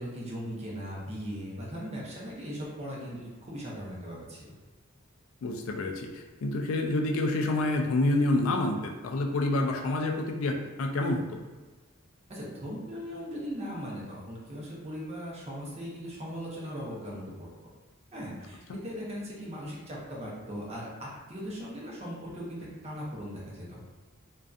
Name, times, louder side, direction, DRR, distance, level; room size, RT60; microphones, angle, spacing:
voice 1, 0.0-4.5 12.3-17.2 18.1-23.8, equal, 30° right, -4 dB, 0.6 m, -39 dB
voice 2, 5.4-6.1 6.4-11.2 18.7-18.8, left 2 dB, 80° left, 3 dB, 0.4 m, -28 dB
2.6 x 2.2 x 2.3 m, 1.2 s
head